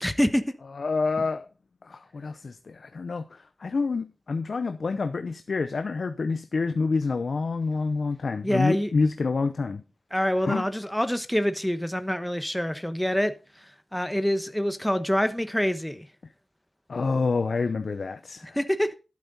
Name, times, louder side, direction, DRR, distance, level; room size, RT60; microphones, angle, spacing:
voice 1, 0.0-0.4 8.4-8.9 10.1-13.6 13.9-16.1 18.5-18.9, equal, 5° left, 1.1 m, -26 dB
voice 2, 0.8-1.5 1.8-9.8 10.4-10.6 16.9-18.6, left 4 dB, 75° left, 0.7 m, -27 dB
11.5 x 8.4 x 4.1 m
wide cardioid pair, 55°, 0 cm